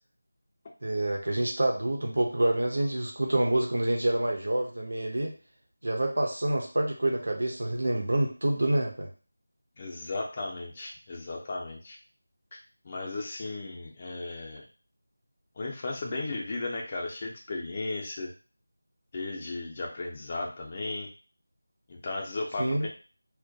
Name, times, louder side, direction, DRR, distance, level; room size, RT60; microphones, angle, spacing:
voice 1, 0.8-5.3 5.8-9.1 22.6-22.9, right 1 dB, 75° right, 2 dB, 0.6 m, -27 dB
voice 2, 9.8-12.0 12.5-14.6 15.6-18.3 19.1-21.1 21.9-22.9, left 2 dB, 25° left, -1 dB, 0.4 m, -35 dB
2.2 x 2.1 x 2.6 m, 0.35 s
figure-of-eight pair, 175°, 0 cm